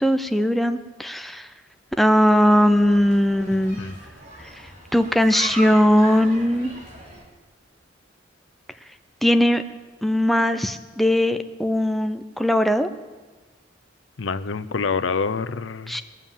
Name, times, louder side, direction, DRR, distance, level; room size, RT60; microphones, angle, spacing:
voice 1, 0.0-1.5 2.0-3.8 4.4-4.6 4.9-6.7 9.2-9.6 10.0-12.9 15.9-16.0, equal, ahead, 8 dB, 0.5 m, -19 dB
sound 1, 2.2-7.2, right 1 dB, 40° right, 3.3 m, -38 dB
voice 2, 14.2-16.0, left 5 dB, 90° left, 13 dB, 0.6 m, -26 dB
21.0 x 7.3 x 7.4 m, 1.3 s
head